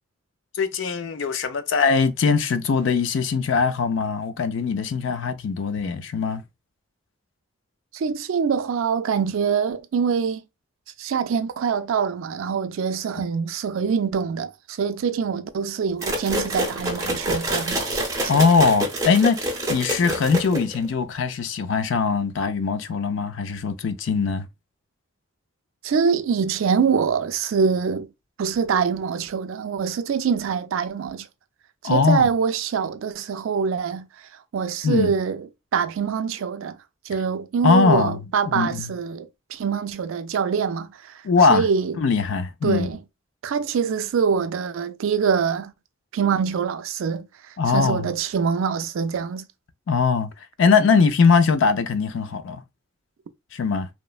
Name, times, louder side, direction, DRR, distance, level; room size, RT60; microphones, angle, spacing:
voice 1, 0.5-6.4 18.3-24.4 31.8-32.3 34.8-35.1 37.6-38.2 38.5-38.9 41.2-41.7 42.0-42.9 47.6-48.1 49.9-50.3 50.6-52.6 53.5-53.9, left 5 dB, 65° left, 0.4 m, -21 dB
voice 2, 7.9-10.4 11.0-18.0 25.8-28.1 28.4-31.3 31.8-34.1 34.5-36.8 37.1-41.1 41.5-42.0 42.6-43.0 43.4-45.7 46.1-47.3 47.7-49.5, right 6 dB, 75° right, 0.3 m, -24 dB
sound 1, 16.0-20.9, right 1 dB, 15° right, 0.6 m, -27 dB
3.0 x 2.1 x 2.3 m
head